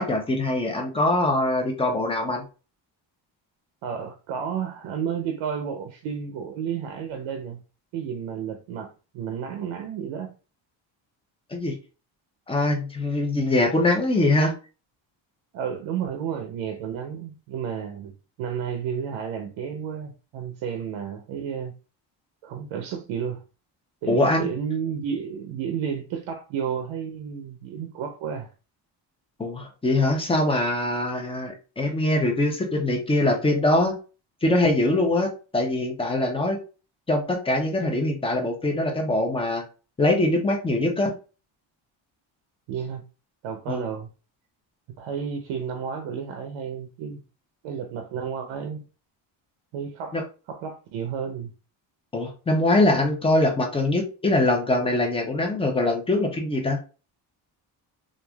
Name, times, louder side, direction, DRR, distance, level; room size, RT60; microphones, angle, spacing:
voice 1, 0.0-2.4 11.5-11.8 12.5-14.5 24.1-24.5 29.4-34.0 34.4-36.6 37.1-39.6 40.0-41.1 43.7-43.8 50.1-50.2 52.1-56.8, left 2 dB, 10° left, 0.5 m, -23 dB
voice 2, 3.8-7.6 7.9-10.3 15.5-18.1 18.4-21.8 22.4-23.4 24.0-28.5 42.7-43.0 43.4-44.1 45.0-47.2 47.6-48.8 49.7-50.2 50.5-51.5, right 7 dB, 85° right, 0.6 m, -31 dB
3.2 x 2.5 x 2.2 m
cardioid pair, 135°, 46 cm